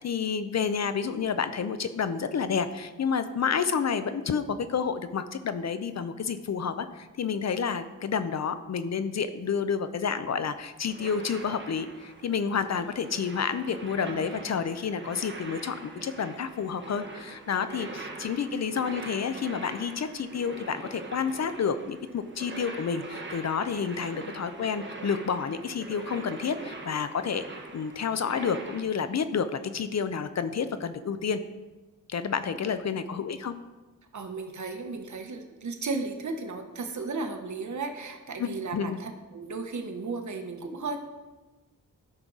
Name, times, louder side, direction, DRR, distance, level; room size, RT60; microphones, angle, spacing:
voice 1, 0.0-27.4 27.7-31.4 32.1-33.6 38.4-39.0, left 6 dB, 55° left, 11 dB, 0.5 m, -30 dB
sound 1, 10.8-28.8, right 3 dB, 35° right, 1.3 m, -43 dB
voice 2, 34.1-41.0, right 3 dB, 65° right, 4 dB, 1.0 m, -35 dB
12.5 x 6.1 x 4.0 m, 1.2 s
wide cardioid pair, 120°, 32 cm